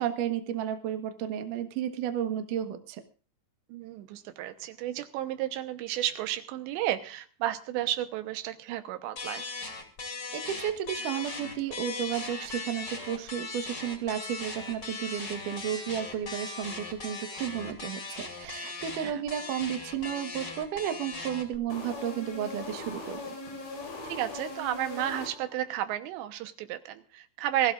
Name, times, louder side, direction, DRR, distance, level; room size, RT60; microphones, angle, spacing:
voice 1, 0.0-3.0 10.3-23.2, right 9 dB, 60° right, 7 dB, 2.5 m, -33 dB
voice 2, 3.7-9.5 19.0-19.2 24.1-27.7, right 12 dB, 85° right, 9 dB, 3.3 m, -32 dB
sound 1, 9.2-21.6, left 3 dB, 30° left, 2.8 m, -39 dB
sound 2, 21.7-25.8, left 2 dB, 85° left, 7.4 m, -40 dB
24.0 x 15.5 x 2.5 m, 0.35 s
omnidirectional pair, 5.0 m